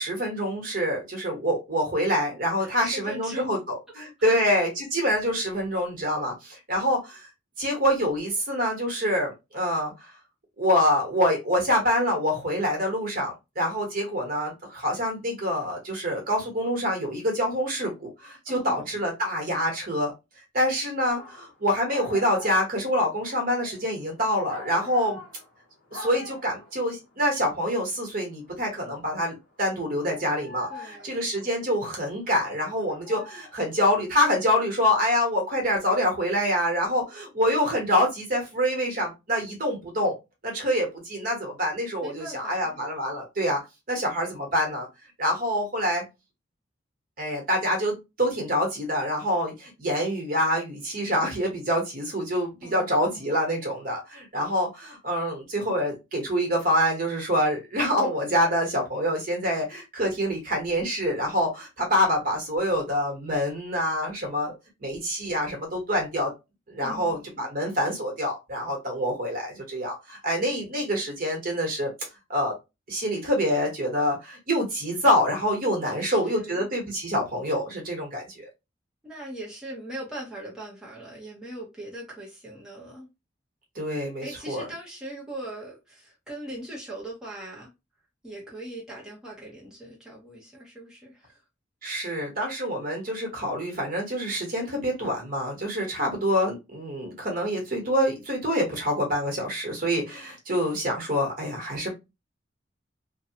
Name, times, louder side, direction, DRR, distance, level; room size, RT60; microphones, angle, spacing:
voice 1, 0.0-7.3 7.6-10.1 10.6-20.1 20.5-25.2 25.9-40.1 40.4-43.6 43.9-44.9 45.2-46.0 47.2-64.5 64.8-66.3 66.7-72.5 72.9-78.5 83.7-84.6 91.8-101.9, equal, 50° right, 1.1 m, -26 dB
voice 2, 2.6-3.6 4.2-4.4 18.5-19.0 30.7-31.2 42.0-42.8 52.6-53.4 66.8-67.5 75.8-76.7 79.0-83.1 84.2-87.7 88.2-91.4, right 1 dB, 5° right, 0.8 m, -40 dB
sound 1, 21.1-21.5 21.9-25.6 25.9-26.8 27.2-29.2 29.6-31.6 32.5-34.0, left 2 dB, 60° left, 1.0 m, -43 dB
2.7 x 2.2 x 2.8 m
head